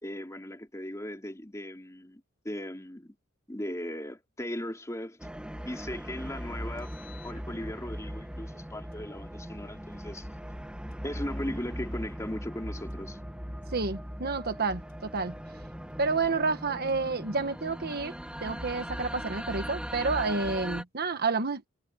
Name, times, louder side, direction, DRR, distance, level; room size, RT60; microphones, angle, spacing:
voice 1, 0.0-3.1 3.5-5.2 5.6-6.9 7.2-10.3 11.0-13.2, left 1 dB, 15° left, 3.3 m, -38 dB
sound 1, 5.2-20.8, equal, 5° right, 1.4 m, -39 dB
Engine, 6.8-8.1 8.9-10.1 10.9-12.2 12.9-14.2 14.9-16.2 16.9-18.1, left 2 dB, 50° left, 7.0 m, -58 dB
voice 2, 13.7-15.3 16.0-18.1 18.4-21.7, right 4 dB, 50° right, 1.3 m, -29 dB
head